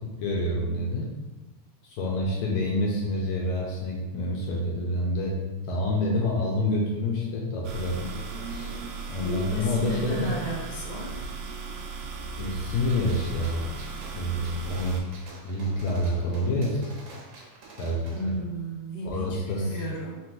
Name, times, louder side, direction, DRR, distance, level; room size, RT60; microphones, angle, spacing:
voice 1, 0.0-1.1 1.8-5.4 5.7-8.1 8.5-8.7 9.1-10.4 12.4-13.7 14.2-15.1 15.4-16.8 17.8-18.3 19.0-19.7, left 1 dB, 80° left, -3 dB, 1.9 m, -27 dB
sound 1, 7.6-15.0, right 4 dB, 90° right, 1.4 m, -37 dB
voice 2, 9.2-11.2 18.1-20.2, right 1 dB, 50° left, -5 dB, 1.4 m, -34 dB
Gunshot gunfire, 12.9-18.3, right 3 dB, 75° right, 1.5 m, -48 dB
4.6 x 3.6 x 2.6 m, 1.2 s
omnidirectional pair, 3.5 m